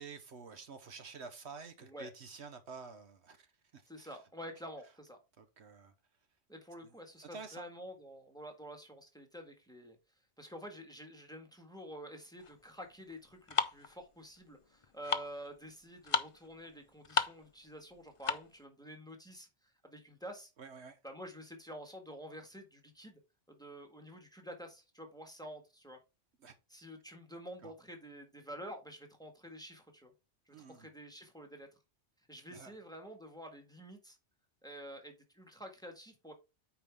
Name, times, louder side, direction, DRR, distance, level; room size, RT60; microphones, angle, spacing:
voice 1, 0.0-3.5 3.7-4.2 5.4-5.9 6.8-7.6 20.6-21.0 26.4-26.5 27.6-27.7 30.5-30.9 32.5-32.7, right 5 dB, 65° right, 1.2 m, -50 dB
voice 2, 1.8-2.1 3.9-5.2 6.5-10.0 10.4-20.5 21.0-23.2 23.5-26.0 26.7-30.1 30.5-31.7 32.3-34.2 34.6-36.3, equal, 5° left, 1.6 m, -49 dB
sound 1, 12.4-18.6, left 5 dB, 40° left, 0.5 m, -36 dB
8.9 x 4.8 x 3.5 m
omnidirectional pair, 1.2 m